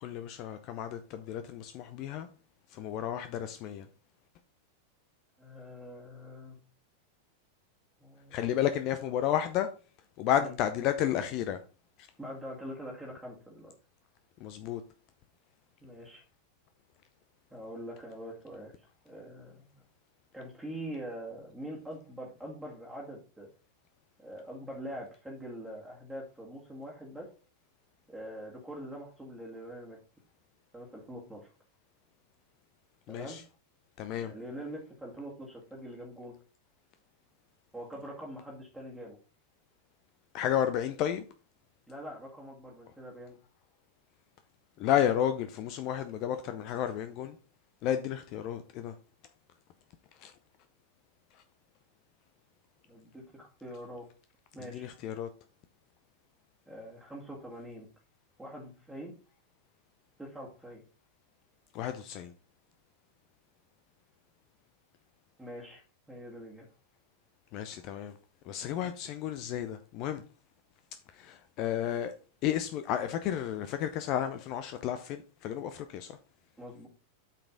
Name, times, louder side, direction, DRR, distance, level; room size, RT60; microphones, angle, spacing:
voice 1, 0.0-2.3 2.7-3.9 8.3-9.7 10.2-11.6 14.4-14.8 33.1-33.4 34.0-34.3 40.3-41.2 44.8-47.4 47.8-48.9 50.2-50.3 54.7-55.3 61.7-62.3 67.5-68.1 68.5-70.2 71.1-72.1 72.4-76.2, left 10 dB, 40° left, 0.6 m, -32 dB
voice 2, 5.4-6.6 8.0-8.4 10.3-10.5 12.2-13.7 15.8-16.2 17.5-18.7 19.0-19.7 20.3-23.5 24.2-27.3 28.1-30.0 30.7-31.5 33.1-33.4 34.2-36.3 37.7-39.2 41.9-43.4 52.9-54.1 54.5-54.9 56.7-57.9 58.4-59.1 60.2-60.8 65.4-65.8 66.1-66.7 68.8-68.9 76.6-76.9, equal, 5° right, 1.9 m, -44 dB
8.7 x 5.1 x 3.7 m
figure-of-eight pair, 90°, 0 cm